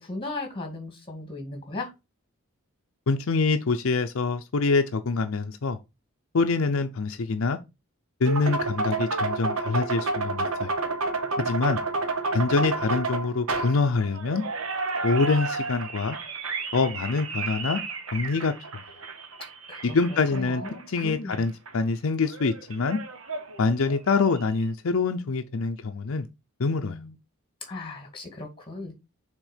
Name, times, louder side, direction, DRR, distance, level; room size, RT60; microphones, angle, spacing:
voice 1, 0.0-1.9 19.7-21.4 26.7-27.1 27.6-28.9, left 2 dB, 25° left, 1.9 m, -37 dB
voice 2, 3.1-5.8 6.3-7.6 8.2-10.7 11.4-11.8 12.3-14.4 15.0-16.2 16.7-17.8 18.1-18.8 19.8-20.6 20.9-23.0 23.6-26.3 26.6-27.0, left 4 dB, 70° left, 0.6 m, -25 dB
sound 1, 8.3-21.4 21.7-21.8 22.3-24.3, right 3 dB, 80° right, 1.2 m, -31 dB
6.3 x 3.7 x 5.0 m
head